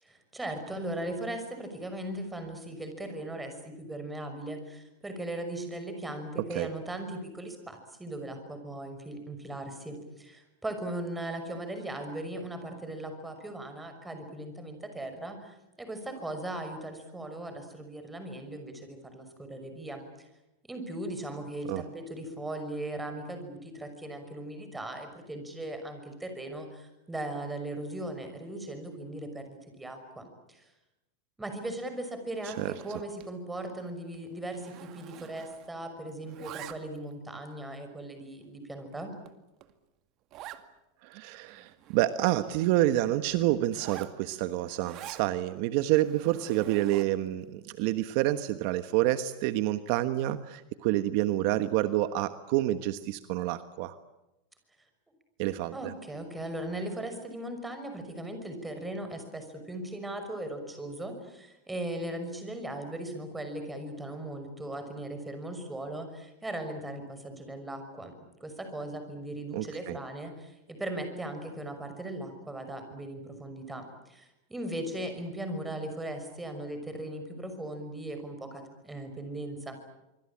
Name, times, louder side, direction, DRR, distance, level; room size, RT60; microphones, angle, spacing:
voice 1, 0.0-20.3 20.7-30.7 31.4-39.1 55.7-79.8, right 1 dB, 10° right, 7 dB, 5.9 m, -38 dB
Zipper (clothing), 32.3-33.4 33.7-33.9 34.1-35.8 36.1-37.1 37.7-37.8 38.4-38.5 38.9-39.0 39.3-39.4 39.6-39.7 40.3-40.7 41.1-41.2 41.4-42.7 43.7-45.3 45.9-47.3, right 13 dB, 40° right, 2.1 m, -47 dB
voice 2, 41.0-54.0 55.4-55.9 69.5-70.0, right 15 dB, 60° right, 11 dB, 1.3 m, -28 dB
25.5 x 25.0 x 8.7 m, 0.96 s
supercardioid pair, 135°, 0 cm